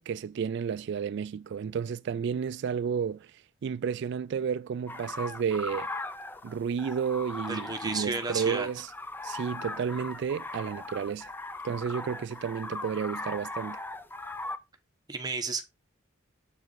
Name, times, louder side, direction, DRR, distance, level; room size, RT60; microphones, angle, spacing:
voice 1, 0.0-3.3 3.6-5.9 6.4-8.9 9.2-11.3 11.6-13.8, right 7 dB, 60° right, 0.3 m, -31 dB
sound 1, 4.9-14.6, left 2 dB, 10° left, 0.5 m, -39 dB
voice 2, 7.5-8.7 15.1-15.6, right 3 dB, 20° right, 1.1 m, -32 dB
7.7 x 4.6 x 4.0 m
head